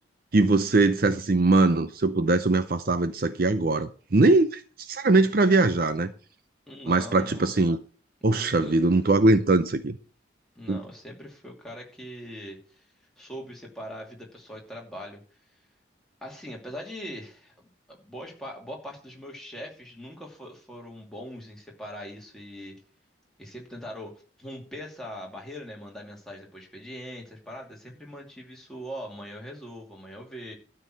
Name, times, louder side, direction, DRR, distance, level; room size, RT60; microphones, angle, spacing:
voice 1, 0.3-6.1 6.9-7.8 8.2-10.0 10.7-10.8, right 2 dB, 50° right, 0.6 m, -21 dB
voice 2, 6.7-7.5 8.3-8.8 10.6-12.8 13.2-15.2 16.2-22.8 23.4-30.5, equal, ahead, 2.7 m, -41 dB
12.5 x 4.7 x 7.7 m
head